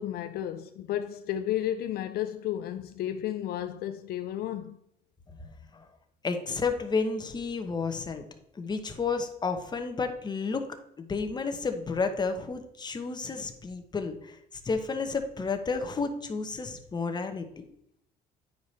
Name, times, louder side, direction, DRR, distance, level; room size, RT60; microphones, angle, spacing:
voice 1, 0.0-4.8, left 11 dB, 65° left, 0.4 m, -32 dB
voice 2, 5.4-5.8 6.2-8.2 8.6-14.4 14.6-17.7, left 4 dB, 25° left, 1.0 m, -31 dB
9.4 x 4.9 x 4.1 m
cardioid pair, 110°, 17 cm